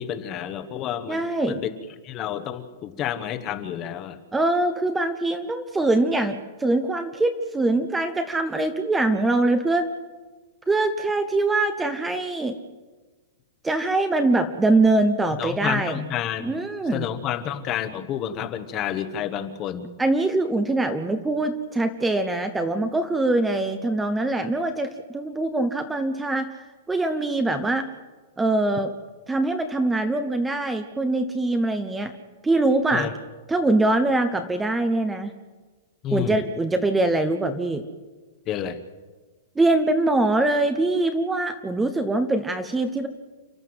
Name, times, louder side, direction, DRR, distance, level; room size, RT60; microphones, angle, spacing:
voice 1, 0.0-1.7 2.0-4.2 15.4-16.6 16.9-19.9 32.9-33.1 36.0-36.4 38.5-38.8, left 10 dB, 25° left, 10 dB, 1.1 m, -30 dB
voice 2, 1.1-1.6 4.3-9.9 10.7-12.6 13.6-16.0 16.4-17.1 20.0-27.9 28.4-28.9 29.3-32.1 32.4-33.1 33.5-35.3 36.1-37.8 39.6-43.1, right 2 dB, 5° right, 9 dB, 0.8 m, -23 dB
29.5 x 12.0 x 7.9 m, 1.3 s
supercardioid pair, 170°, 0 cm